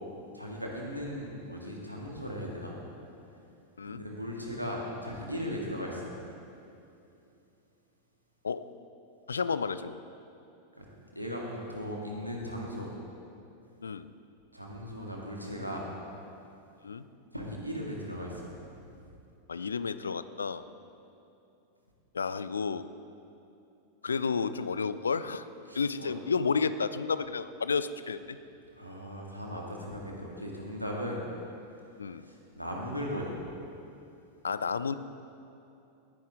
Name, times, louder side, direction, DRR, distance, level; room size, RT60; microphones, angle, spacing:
voice 1, 0.3-2.8 3.3-3.5 3.8-6.1 10.8-10.9 11.1-12.9 14.5-15.9 17.3-18.5 18.9-19.0 25.7-26.1 28.8-31.2 32.1-33.4, equal, 90° right, -2 dB, 1.9 m, -37 dB
voice 2, 9.3-10.0 13.8-14.1 16.8-17.1 19.5-20.6 22.1-22.9 24.0-25.5 25.7-28.4 32.0-32.2 34.4-34.9, left 5 dB, 70° left, 14 dB, 0.4 m, -31 dB
18.0 x 9.9 x 3.7 m, 2.7 s
figure-of-eight pair, 90°, 0 cm